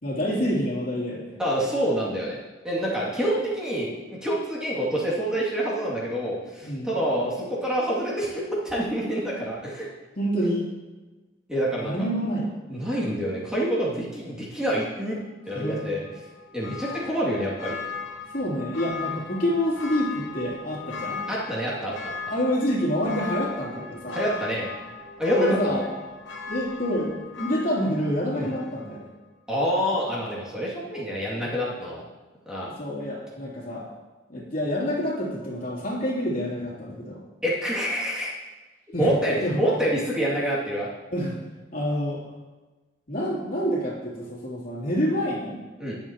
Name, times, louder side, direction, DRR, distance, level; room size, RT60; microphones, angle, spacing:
voice 1, 0.0-1.3 6.6-6.9 10.2-10.7 11.8-12.9 15.5-15.9 18.3-21.2 22.3-24.2 25.3-25.8 26.5-29.1 32.6-33.8 34.3-37.2 38.9-39.1 39.4-39.6 41.1-41.4 41.7-42.2 43.1-45.6, equal, 50° left, -5 dB, 3.0 m, -27 dB
voice 2, 1.4-2.4 2.6-9.9 11.5-11.9 12.7-15.2 15.5-16.0 16.5-17.8 21.3-22.1 24.1-24.7 25.2-25.8 28.3-28.5 29.5-32.0 32.5-32.7 37.4-38.3 39.0-40.9 45.8-45.9, equal, 5° right, -7 dB, 2.4 m, -27 dB
Church bell, 15.5-29.1 29.5-29.6, left 5 dB, 85° left, 1.2 m, -38 dB
20.5 x 7.4 x 3.0 m, 1.2 s
head